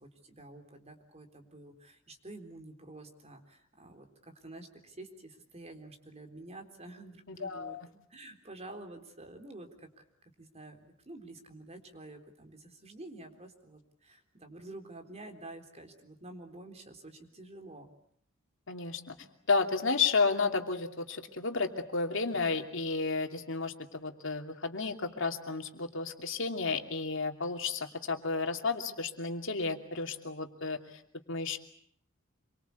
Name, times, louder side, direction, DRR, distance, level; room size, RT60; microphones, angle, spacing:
voice 1, 0.0-7.8 8.1-10.0 10.4-17.9, right 2 dB, 30° right, 5 dB, 3.8 m, -49 dB
voice 2, 7.3-7.9 18.7-19.2 19.5-31.0 31.3-31.6, left 4 dB, 65° left, 5 dB, 2.8 m, -32 dB
27.0 x 24.0 x 8.3 m, 0.66 s
head